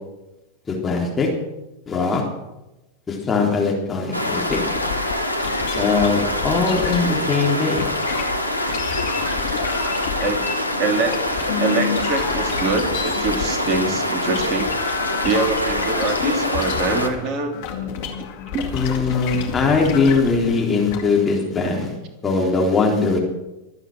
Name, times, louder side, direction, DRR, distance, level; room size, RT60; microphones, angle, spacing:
voice 1, 0.7-1.3 1.9-2.2 3.1-4.6 5.7-7.9 18.7-21.9 22.2-23.2, left 4 dB, 15° left, -1 dB, 3.7 m, -20 dB
sound 1, 4.1-17.1, left 1 dB, 90° left, 1.5 m, -25 dB
sound 2, 4.5-7.3 7.8-21.0, left 8 dB, 50° left, 2.6 m, -30 dB
voice 2, 10.2-14.7 15.2-17.5 18.5-18.8, right 3 dB, 35° right, 5 dB, 3.1 m, -24 dB
24.5 x 8.9 x 6.2 m, 0.99 s
figure-of-eight pair, 90°, 0 cm